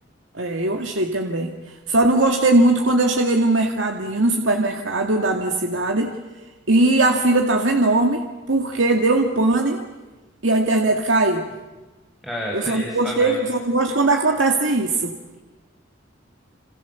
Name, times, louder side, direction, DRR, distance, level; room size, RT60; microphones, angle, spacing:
voice 1, 0.3-6.1 6.7-9.8 10.4-11.5 12.5-15.1, right 2 dB, 80° right, 3 dB, 2.2 m, -20 dB
voice 2, 12.2-13.4, equal, ahead, -1 dB, 5.5 m, -30 dB
30.0 x 28.0 x 7.2 m, 1.2 s
head